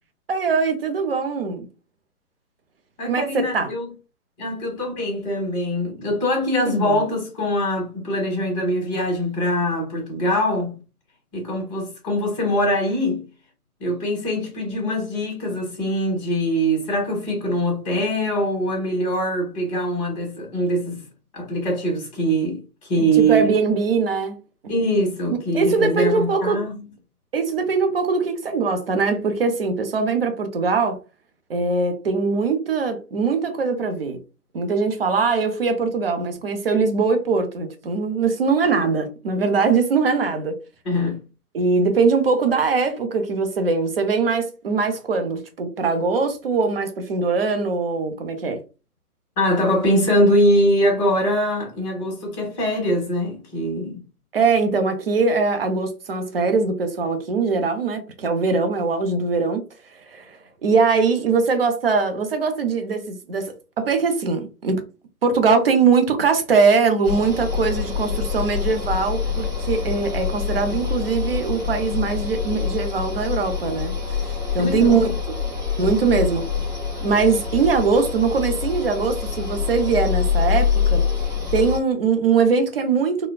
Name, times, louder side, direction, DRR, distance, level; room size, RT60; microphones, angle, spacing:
voice 1, 0.3-1.7 3.1-3.7 6.7-7.0 23.0-24.4 24.6-24.7 25.5-26.6 27.3-31.0 31.5-34.2 34.5-40.6 41.5-48.6 54.3-59.6 60.1-64.8 65.2-73.9 74.5-75.1 75.8-76.5 77.0-81.1 81.5-83.3, right 4 dB, 40° right, 0.6 m, -21 dB
voice 2, 3.0-3.9 4.4-10.7 11.3-13.2 13.8-21.0 21.3-23.5 24.7-26.8 40.8-41.2 49.4-54.0 74.6-75.1, equal, 20° left, 1.2 m, -22 dB
sound 1, 67.0-81.8, left 6 dB, 5° right, 1.2 m, -25 dB
4.1 x 2.2 x 2.2 m
figure-of-eight pair, 135°, 46 cm